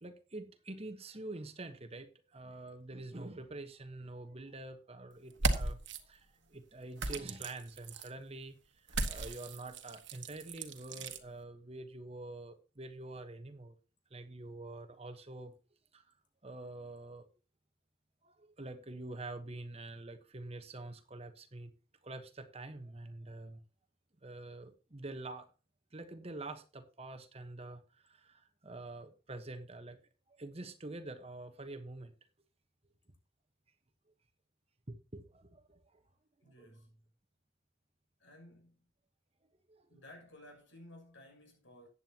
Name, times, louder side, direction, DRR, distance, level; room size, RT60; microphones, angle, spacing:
voice 1, 0.0-5.8 6.0-8.6 8.9-13.7 14.1-15.6 15.9-16.0 16.4-17.3 18.2-21.7 22.0-23.6 24.2-25.5 25.9-30.0 30.3-32.1 34.9-36.0 36.6-36.7 39.7-39.9, right 2 dB, 30° right, 1.2 m, -46 dB
sound 1, 5.3-6.0 7.0-8.1 8.9-11.2, right 3 dB, 65° right, 1.4 m, -36 dB
voice 2, 36.4-37.0 38.2-38.9 39.9-41.9, left 1 dB, 75° left, 6.8 m, -56 dB
14.5 x 9.6 x 2.9 m
head